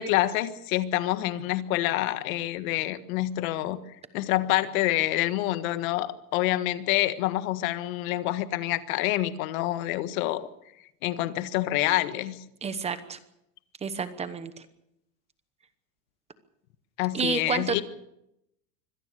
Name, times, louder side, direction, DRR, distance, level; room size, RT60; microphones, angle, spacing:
voice 1, 0.0-3.8 4.1-10.5 11.0-12.4 17.0-17.8, left 15 dB, 55° left, 12 dB, 1.6 m, -27 dB
voice 2, 12.6-13.2 13.8-14.5 17.1-17.8, right 6 dB, 15° right, 12 dB, 1.0 m, -29 dB
25.0 x 17.5 x 6.7 m, 0.83 s
supercardioid pair, 165°, 49 cm